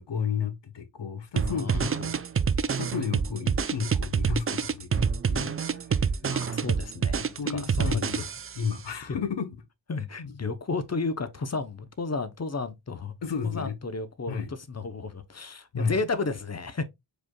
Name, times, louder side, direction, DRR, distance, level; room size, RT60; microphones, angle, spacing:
voice 1, 0.0-2.1 2.7-5.9 7.4-8.3 8.5-9.5 10.2-10.4 13.2-13.7 14.3-14.5 15.7-16.0, left 6 dB, 60° left, 1.1 m, -32 dB
voice 2, 1.4-2.0 6.2-8.3 9.1-9.2 9.9-13.1 13.4-16.8, left 4 dB, 30° left, 0.8 m, -33 dB
sound 1, 1.4-8.7, right 6 dB, 30° right, 0.5 m, -27 dB
5.0 x 4.3 x 2.3 m
cardioid pair, 55°, 48 cm